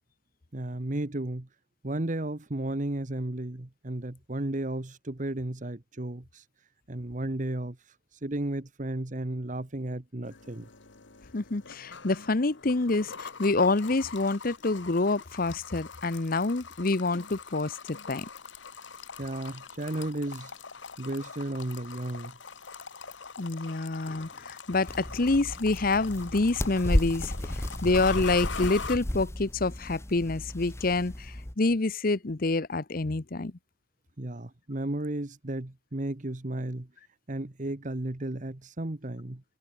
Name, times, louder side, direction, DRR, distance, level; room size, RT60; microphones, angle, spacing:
voice 1, 0.5-1.5 1.8-6.4 6.9-7.8 8.2-10.7 19.2-20.5 21.0-22.4 34.2-36.9 37.3-39.4, right 1 dB, 40° right, 1.3 m, -34 dB
sound 1, 10.2-29.0, left 5 dB, 75° left, 1.8 m, -43 dB
voice 2, 11.3-17.8 18.1-18.3 23.4-33.5, left 3 dB, 50° left, 0.9 m, -27 dB
sound 2, 24.9-31.6, left 1 dB, 15° left, 1.0 m, -33 dB
head